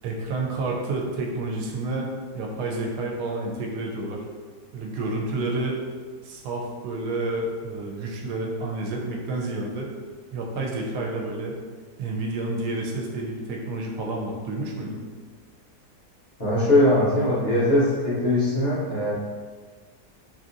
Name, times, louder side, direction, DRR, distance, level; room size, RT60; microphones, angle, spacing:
voice 1, 0.0-2.1 2.3-4.2 4.7-5.8 6.2-9.9 10.3-11.5 12.0-15.0, right 2 dB, 90° right, 0 dB, 1.2 m, -29 dB
voice 2, 16.4-19.1, left 1 dB, 50° left, -9 dB, 0.9 m, -21 dB
2.8 x 2.6 x 2.5 m, 1.5 s
omnidirectional pair, 1.7 m